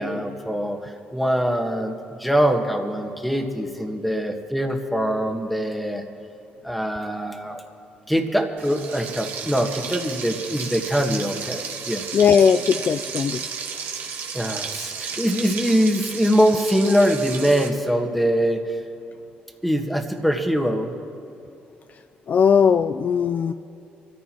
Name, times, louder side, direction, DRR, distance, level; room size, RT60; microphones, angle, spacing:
voice 1, 0.0-6.0 6.6-7.6 8.1-12.0 14.3-18.8 19.6-20.9, equal, ahead, 4 dB, 1.5 m, -23 dB
Frying (food), 8.6-17.7, right 6 dB, 65° right, 1.6 m, -33 dB
voice 2, 12.1-13.4 22.3-23.5, left 7 dB, 45° left, 11 dB, 0.4 m, -18 dB
24.5 x 14.0 x 3.0 m, 2.7 s
cardioid pair, 95°, 4 cm